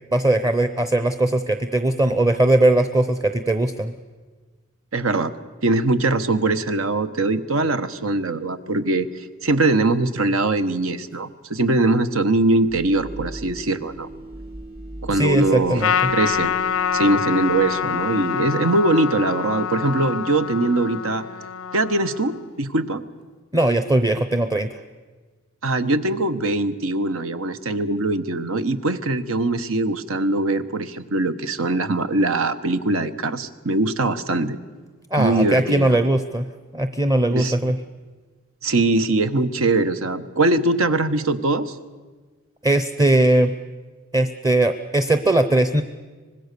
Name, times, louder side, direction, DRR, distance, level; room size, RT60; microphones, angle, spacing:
voice 1, 0.1-3.9 15.1-16.1 23.5-24.7 35.1-36.5 36.7-37.8 42.6-43.5 44.1-45.8, right 1 dB, 20° right, 10 dB, 0.7 m, -19 dB
voice 2, 4.9-5.3 5.6-14.1 15.0-15.9 16.1-16.5 16.9-21.2 21.7-23.0 25.6-34.6 35.2-36.0 37.3-37.5 38.6-41.7, right 2 dB, 85° right, 10 dB, 1.1 m, -22 dB
sound 1, 12.7-18.5, right 1 dB, 45° right, 5.0 m, -39 dB
Trumpet, 15.8-22.5, left 7 dB, 90° left, 0.6 m, -26 dB
25.0 x 20.0 x 6.8 m, 1.4 s
head